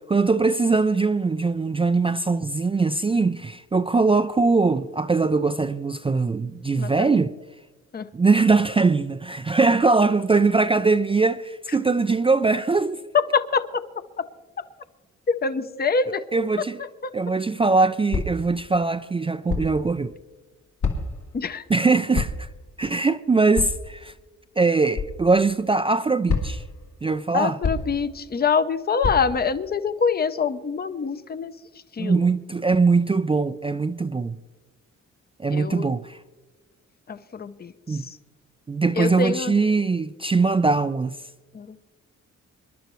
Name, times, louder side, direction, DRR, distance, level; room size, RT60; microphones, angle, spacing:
voice 1, 0.1-7.3 8.1-13.0 16.1-16.8 17.1-20.1 21.7-22.5 22.8-24.1 24.6-26.6 27.0-27.6 32.0-34.4 35.4-36.2 37.9-38.0 38.7-41.2, right 4 dB, 20° right, 0.4 m, -21 dB
voice 2, 6.8-7.1 7.9-8.0 13.3-13.8 14.2-14.3 15.3-16.2 21.3-21.6 27.3-31.5 32.0-32.2 35.5-35.9 37.1-37.7 39.0-39.5 41.5-41.8, left 5 dB, 30° left, 0.7 m, -25 dB
sound 1, 18.1-18.5 19.5-19.8 20.8-21.2 22.1-22.5 23.5-23.8 24.9-25.1 26.3-26.7 27.6-28.0 29.0-29.2, left 4 dB, 75° left, 2.5 m, -26 dB
25.5 x 11.5 x 3.1 m
cardioid pair, 100°, 30 cm